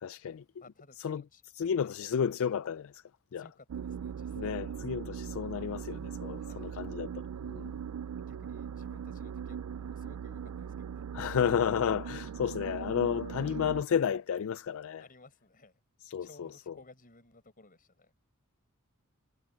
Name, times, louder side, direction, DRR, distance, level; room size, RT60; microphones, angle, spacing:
voice 1, 0.0-0.4 1.0-1.2 1.6-2.9 3.3-3.4 4.4-7.1 7.5-7.7 11.1-15.0 16.1-16.3, left 7 dB, 65° left, 0.4 m, -31 dB
voice 2, 0.5-1.4 1.8-2.0 3.4-4.7 6.4-6.8 8.2-11.4 15.0-15.8 16.2-18.1, left 2 dB, 40° left, 6.0 m, -58 dB
sound 1, 3.7-13.8, right 7 dB, 80° right, 0.4 m, -40 dB
head